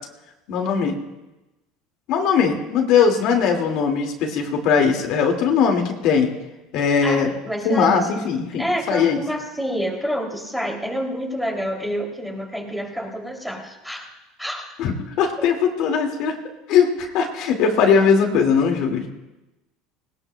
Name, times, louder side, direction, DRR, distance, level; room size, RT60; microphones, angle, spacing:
voice 1, 0.5-1.0 2.1-6.3 6.7-7.3 7.6-9.2 14.8-16.4 16.7-19.1, left 6 dB, 60° left, 3 dB, 2.0 m, -20 dB
voice 2, 7.0-8.1 8.6-14.1 14.4-14.7 15.4-15.5, equal, ahead, 1 dB, 2.8 m, -28 dB
20.0 x 18.5 x 2.2 m, 1.0 s
supercardioid pair, 125°, 0 cm